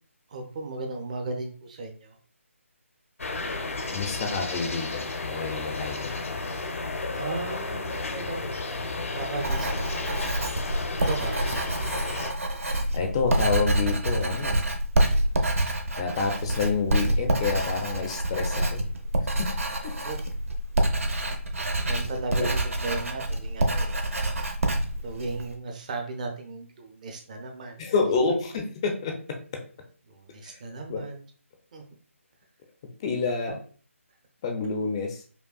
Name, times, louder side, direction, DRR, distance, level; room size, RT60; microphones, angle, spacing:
voice 1, 0.3-2.2 4.1-4.4 7.1-10.2 11.0-11.3 20.0-20.2 21.8-24.1 25.0-27.8 30.1-31.2 31.7-31.8 33.2-33.5, right 3 dB, 30° right, 3 dB, 0.6 m, -36 dB
sound 1, 3.2-12.3, left 3 dB, 70° left, 0.7 m, -33 dB
voice 2, 3.9-6.2 12.9-14.6 16.0-18.8 19.4-19.5 19.8-20.0 21.8-21.9 22.4-22.5 27.8-29.6 30.4-30.6 30.9-31.0 33.0-33.6 34.4-35.2, left 4 dB, 20° left, 4 dB, 0.5 m, -28 dB
Writing, 9.4-25.5, right 1 dB, 75° right, 0.8 m, -27 dB
5.3 x 2.2 x 2.3 m, 0.42 s
figure-of-eight pair, 150°, 8 cm